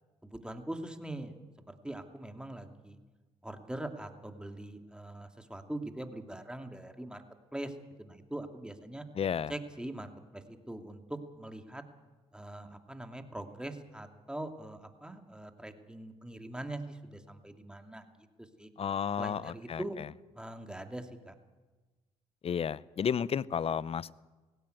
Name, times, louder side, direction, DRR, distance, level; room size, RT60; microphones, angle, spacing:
voice 1, 0.2-1.3 1.7-3.0 3.4-7.2 7.5-7.7 8.0-9.0 9.5-11.8 12.3-18.0 18.4-18.7 19.2-20.0 20.3-21.3, right 1 dB, 5° right, 6 dB, 2.6 m, -42 dB
voice 2, 9.1-9.5 18.8-20.1 22.4-24.1, left 7 dB, 45° left, 21 dB, 0.7 m, -32 dB
18.0 x 16.5 x 9.4 m, 1.2 s
supercardioid pair, 55°, 14 cm